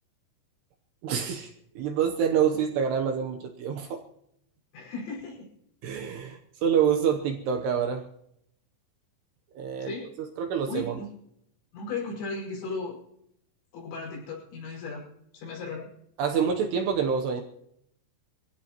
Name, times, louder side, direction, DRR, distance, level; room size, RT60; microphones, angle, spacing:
voice 1, 1.0-4.0 5.8-8.1 9.6-9.9 10.4-11.0 16.2-17.4, right 7 dB, 75° right, 4 dB, 2.6 m, -27 dB
voice 2, 4.7-5.5 9.8-10.1 10.7-11.1 11.7-13.0 13.7-15.1 15.3-15.9, left 3 dB, 90° left, -3 dB, 8.0 m, -36 dB
25.5 x 16.0 x 3.0 m, 0.74 s
omnidirectional pair, 5.7 m